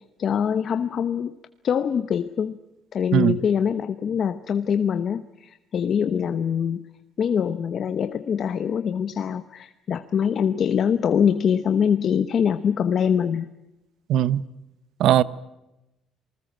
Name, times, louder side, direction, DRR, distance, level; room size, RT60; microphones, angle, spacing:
voice 1, 0.2-1.3 1.6-2.6 2.9-6.8 7.2-13.5, left 7 dB, 35° left, 0.8 m, -23 dB
voice 2, 14.1-14.4 15.0-15.2, right 11 dB, 55° right, 0.8 m, -18 dB
27.5 x 20.0 x 7.5 m
cardioid pair, 175°, 0 cm